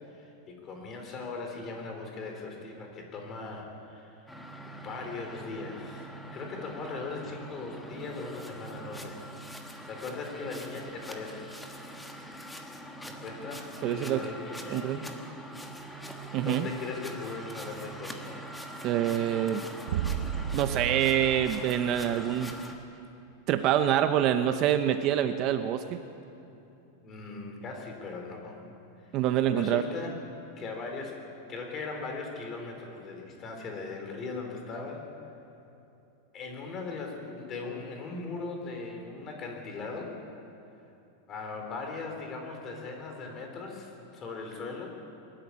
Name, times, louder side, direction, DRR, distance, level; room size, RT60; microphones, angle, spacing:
voice 1, 0.1-4.3 4.6-9.2 9.6-11.5 13.0-14.9 16.4-18.5 27.0-28.6 29.0-29.2 29.5-30.2 30.6-31.2 31.5-35.0 36.3-40.1 41.3-45.0, left 4 dB, 25° left, 2 dB, 3.9 m, -39 dB
sound 1, 4.3-22.7, right 1 dB, 5° left, 1.5 m, -43 dB
voice 2, 13.8-14.2 14.7-15.0 16.3-16.7 18.8-19.6 20.5-22.5 23.5-26.0 29.1-29.8, right 10 dB, 35° right, 9 dB, 0.8 m, -26 dB
sound 2, 19.9-22.5, right 8 dB, 70° right, 0.9 m, -33 dB
22.5 x 13.0 x 9.7 m, 2.8 s
supercardioid pair, 160°, 0 cm